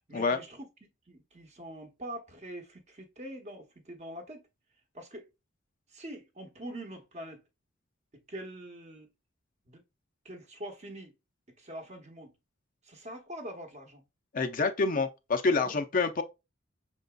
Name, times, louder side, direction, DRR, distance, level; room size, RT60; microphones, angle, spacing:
voice 1, 0.1-4.4 4.9-5.3 5.9-7.4 8.1-9.1 9.6-9.8 10.2-11.1 11.6-12.3 12.8-14.0 15.6-15.8, right 1 dB, 35° right, 0.9 m, -44 dB
voice 2, 14.3-16.2, left 4 dB, 40° left, 0.5 m, -27 dB
5.8 x 3.9 x 2.3 m
head